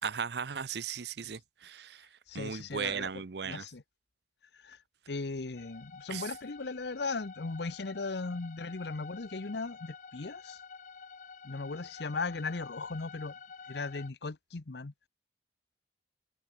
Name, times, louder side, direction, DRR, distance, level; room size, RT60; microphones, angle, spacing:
voice 1, 0.0-2.1 2.3-3.7 6.1-6.3, right 6 dB, 70° right, 0.7 m, -37 dB
voice 2, 2.3-3.1 3.4-3.8 4.6-4.8 5.1-10.6 11.4-13.3 13.7-15.1, left 3 dB, 70° left, 0.8 m, -37 dB
sound 1, 5.6-14.1, left 5 dB, 45° left, 0.5 m, -50 dB
head